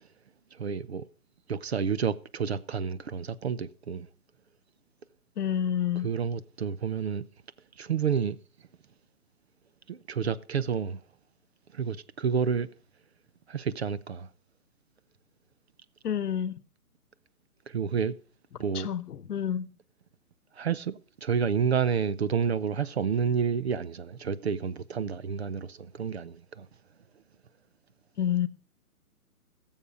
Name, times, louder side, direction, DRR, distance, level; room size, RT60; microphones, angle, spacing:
voice 1, 0.5-1.0 1.5-4.1 6.0-7.3 7.8-8.4 9.9-11.0 11.7-12.7 13.5-14.3 17.7-18.1 18.6-18.9 20.6-26.7, right 6 dB, 45° right, 0.6 m, -29 dB
voice 2, 5.4-6.1 16.0-16.5 18.7-19.7 28.2-28.5, left 9 dB, 85° left, 1.0 m, -28 dB
16.0 x 7.2 x 5.1 m
hypercardioid pair, 160°, 45 cm